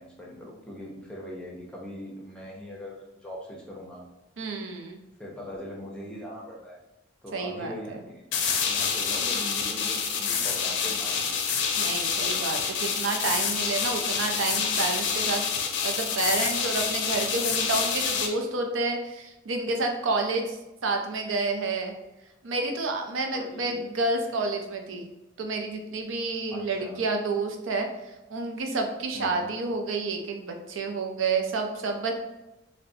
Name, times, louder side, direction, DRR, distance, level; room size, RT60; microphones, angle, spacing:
voice 1, 0.0-4.0 5.2-6.8 7.2-8.2 8.6-11.3 23.3-23.9 26.5-27.0 29.1-29.5, equal, 5° left, -3 dB, 0.6 m, -41 dB
voice 2, 4.4-5.0 7.3-8.0 11.8-15.5 15.8-20.6 20.8-21.9 22.4-25.1 25.4-27.9 28.3-32.1, right 3 dB, 90° right, 3 dB, 0.5 m, -29 dB
sound 1, 8.3-18.3, left 6 dB, 65° left, 0.4 m, -27 dB
3.9 x 2.1 x 2.6 m, 0.98 s
head